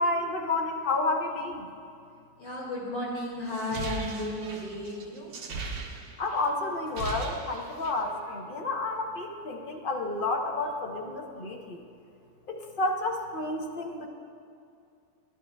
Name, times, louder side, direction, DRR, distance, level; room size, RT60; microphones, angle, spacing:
voice 1, 0.0-1.7 6.2-11.8 12.5-14.1, left 2 dB, 50° left, 2 dB, 0.7 m, -30 dB
voice 2, 2.4-5.3, left 1 dB, 70° left, -5 dB, 2.5 m, -34 dB
sound 1, 3.5-6.4 6.7-8.1, right 3 dB, 80° right, 1.2 m, -37 dB
11.0 x 11.0 x 2.2 m, 2.4 s
omnidirectional pair, 1.7 m